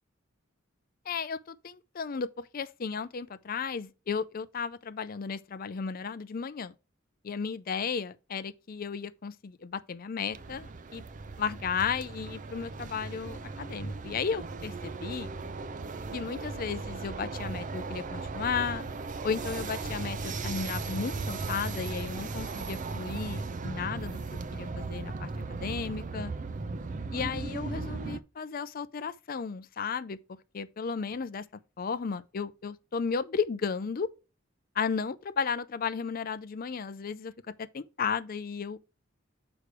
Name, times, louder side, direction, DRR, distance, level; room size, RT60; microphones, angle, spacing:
voice 1, 1.1-6.7 7.2-11.0 11.4-15.3 16.1-18.9 19.2-24.2 24.5-26.3 27.1-31.4 31.8-34.1 34.8-37.3 37.6-38.8, left 6 dB, 45° left, 0.5 m, -34 dB
sound 1, 10.3-28.2, right 3 dB, 40° right, 0.5 m, -37 dB
6.7 x 4.9 x 4.7 m
head